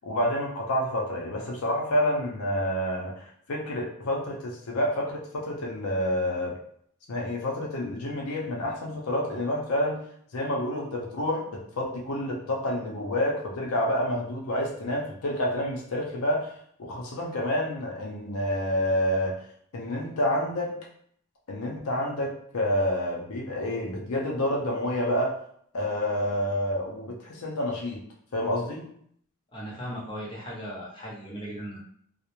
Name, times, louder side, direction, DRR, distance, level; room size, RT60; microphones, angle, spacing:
voice 1, 0.0-6.5 7.1-10.0 10.3-16.5 16.8-19.4 19.7-20.7 21.5-25.4 25.7-28.0 28.3-28.9, left 1 dB, 75° left, -2 dB, 0.6 m, -28 dB
voice 2, 29.5-31.8, equal, 20° left, -5 dB, 0.7 m, -37 dB
2.5 x 2.0 x 2.9 m, 0.66 s
head